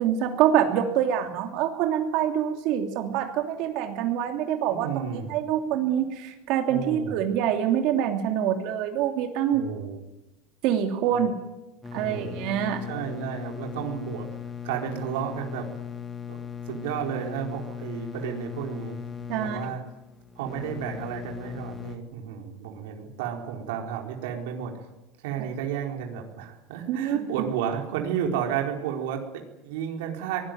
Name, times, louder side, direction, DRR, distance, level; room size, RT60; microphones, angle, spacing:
voice 1, 0.0-9.8 10.6-11.3 11.9-12.8 19.3-19.6 26.9-27.2, right 10 dB, 55° right, 4 dB, 2.9 m, -25 dB
voice 2, 4.7-5.3 6.7-7.2 9.5-10.0 11.1-11.2 11.9-12.5 12.9-14.3 14.6-15.7 16.3-16.4 16.7-19.0 19.4-19.8 20.4-24.9 25.2-30.4, right 8 dB, 90° right, 2 dB, 4.5 m, -32 dB
sound 1, 11.8-22.0, left 7 dB, 15° left, 2.1 m, -38 dB
24.5 x 19.5 x 9.4 m, 0.98 s
cardioid pair, 160°, 0 cm